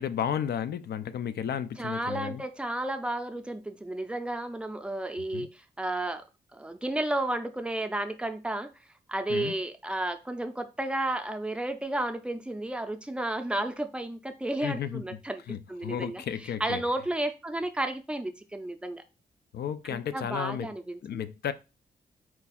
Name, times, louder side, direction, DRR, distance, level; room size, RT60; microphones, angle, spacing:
voice 1, 0.0-2.4 5.3-5.5 9.3-9.5 14.6-15.2 15.5-16.8 19.5-20.7 21.0-21.5, left 9 dB, 75° left, 0.4 m, -33 dB
voice 2, 1.8-6.2 6.5-8.7 9.1-15.4 15.7-16.2 16.6-19.0 19.9-21.2, right 1 dB, 5° right, 0.4 m, -32 dB
4.5 x 2.3 x 4.1 m
wide cardioid pair, 135°, 17 cm